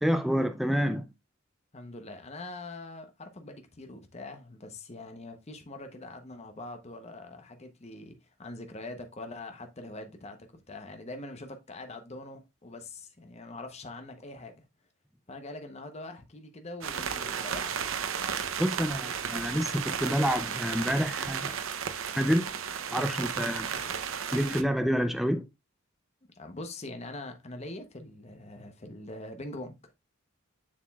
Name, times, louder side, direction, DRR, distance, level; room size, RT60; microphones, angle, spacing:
voice 1, 0.0-1.1 18.6-21.6 22.2-22.5 22.9-23.7 24.3-25.5, equal, ahead, 0.4 m, -28 dB
voice 2, 1.7-14.6 15.3-17.9 23.8-24.1 26.3-29.9, left 2 dB, 30° left, 0.8 m, -43 dB
sound 1, 16.8-24.6, right 7 dB, 65° right, 0.6 m, -34 dB
7.2 x 6.6 x 2.3 m
head